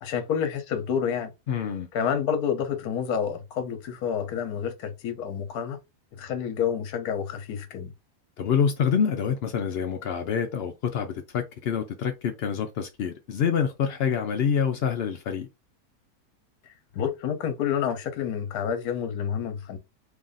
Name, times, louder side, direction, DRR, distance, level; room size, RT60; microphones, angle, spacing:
voice 1, 0.0-1.3 1.9-5.8 6.1-7.9 16.7-19.8, left 8 dB, 70° left, 1.2 m, -29 dB
voice 2, 1.5-1.9 8.4-15.5, left 7 dB, 85° left, 0.5 m, -26 dB
3.2 x 2.5 x 3.8 m
omnidirectional pair, 1.7 m